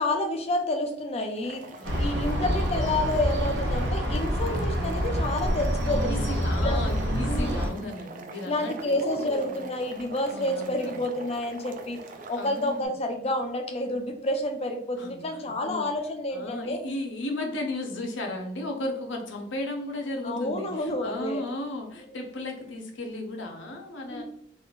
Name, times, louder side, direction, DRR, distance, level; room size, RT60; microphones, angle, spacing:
voice 1, 0.0-1.7 2.0-6.2 6.6-6.9 7.3-7.7 8.4-12.0 12.3-16.8 20.2-21.4 24.1-24.2, left 1 dB, 35° left, 5 dB, 0.5 m, -29 dB
Boiling, 1.3-12.9, right 3 dB, 45° right, 0.3 m, -44 dB
voice 2, 1.8-2.4 5.8-9.7 10.3-11.1 12.4-12.9 15.0-15.9 16.3-24.2, left 1 dB, 75° left, 3 dB, 0.7 m, -35 dB
sound 1, 1.8-7.7, equal, 65° right, 0.7 m, -27 dB
3.6 x 2.5 x 2.4 m, 0.69 s
head